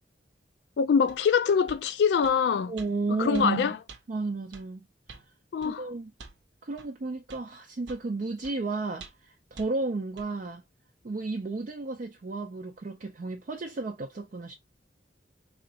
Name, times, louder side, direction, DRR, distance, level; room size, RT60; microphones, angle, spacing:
voice 1, 0.8-2.7 3.2-3.8 5.5-5.8, left 6 dB, 70° left, 0.3 m, -24 dB
sound 1, 1.1-1.2 1.7-1.8 2.2-2.4 2.8-2.9 3.3-3.5 3.9-4.0 4.5-4.7 5.1-5.3 5.6-5.7 6.2-6.4 6.8-6.9 7.3-7.4 7.9-8.1 8.4-8.6 9.0-9.3 9.6-9.7 10.2-10.3, right 4 dB, 90° right, 0.8 m, -47 dB
voice 2, 2.7-3.7 4.1-4.9 5.6-6.1 6.6-10.6 11.0-14.5, right 3 dB, 45° right, 0.4 m, -33 dB
3.8 x 3.0 x 2.7 m
head